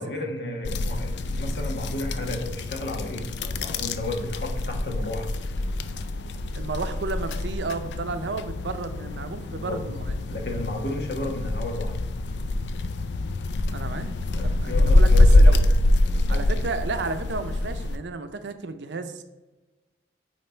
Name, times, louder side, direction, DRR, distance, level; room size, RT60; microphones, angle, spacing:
voice 1, 0.0-5.3 9.5-9.8 10.3-11.9 14.4-15.7 16.0-16.7, left 1 dB, 60° left, 1 dB, 1.1 m, -33 dB
sound 1, 0.6-18.0, left 1 dB, 80° left, 0.4 m, -24 dB
voice 2, 6.5-10.2 13.7-15.6 16.3-19.2, right 3 dB, 80° right, 9 dB, 0.6 m, -33 dB
8.8 x 3.0 x 4.4 m, 1.1 s
head